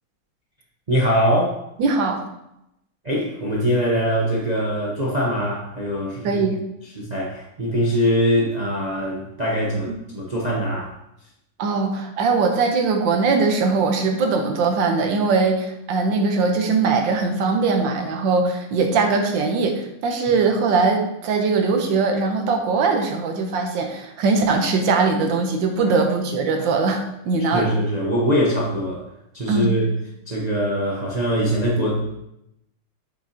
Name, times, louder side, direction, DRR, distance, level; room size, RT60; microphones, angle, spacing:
voice 1, 0.9-1.6 3.0-6.4 7.0-10.9 27.4-29.0 29.3-29.9 30.3-32.2, equal, 40° right, -4 dB, 0.5 m, -22 dB
voice 2, 1.8-2.2 6.2-6.6 9.9-10.0 11.6-27.7 29.5-29.8, right 4 dB, 65° right, 4 dB, 1.5 m, -21 dB
7.2 x 6.1 x 2.8 m, 0.83 s
omnidirectional pair, 2.3 m